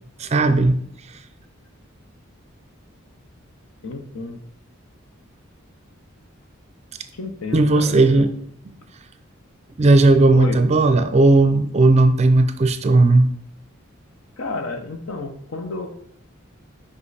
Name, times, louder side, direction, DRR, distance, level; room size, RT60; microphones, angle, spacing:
voice 1, 0.2-0.8 7.5-8.4 9.8-13.3, right 2 dB, 30° right, 0.4 m, -15 dB
voice 2, 3.8-4.4 7.1-8.2 10.3-10.6 14.4-15.9, left 3 dB, 80° left, 0.9 m, -31 dB
5.3 x 5.2 x 4.1 m
head